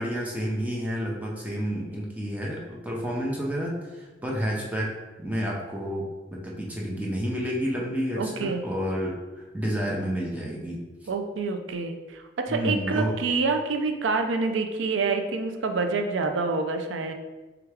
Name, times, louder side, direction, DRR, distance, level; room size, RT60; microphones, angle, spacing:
voice 1, 0.0-4.9 5.2-10.8 12.5-13.2, equal, 10° right, -3 dB, 0.5 m, -30 dB
voice 2, 8.2-8.6 11.1-17.1, right 4 dB, 85° right, 5 dB, 0.4 m, -27 dB
3.5 x 3.4 x 3.3 m, 1.2 s
head